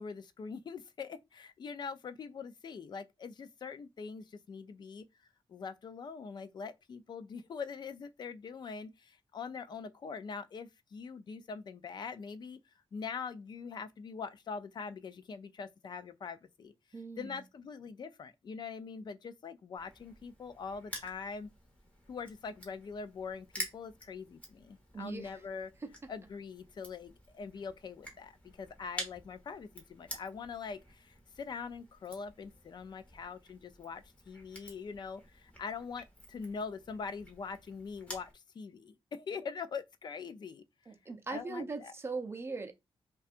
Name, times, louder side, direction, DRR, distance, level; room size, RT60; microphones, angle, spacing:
voice 1, 0.0-5.1 5.5-12.6 12.9-16.7 17.2-21.5 22.1-25.7 26.1-28.3 28.6-40.6 41.3-41.9, left 5 dB, 45° left, 0.4 m, -43 dB
voice 2, 16.9-17.4 24.9-25.3 25.8-26.1 40.9-42.7, right 4 dB, 25° right, 0.5 m, -40 dB
Crushing, 19.8-38.3, equal, 15° left, 1.2 m, -49 dB
5.4 x 2.3 x 2.5 m
wide cardioid pair, 165°, 10 cm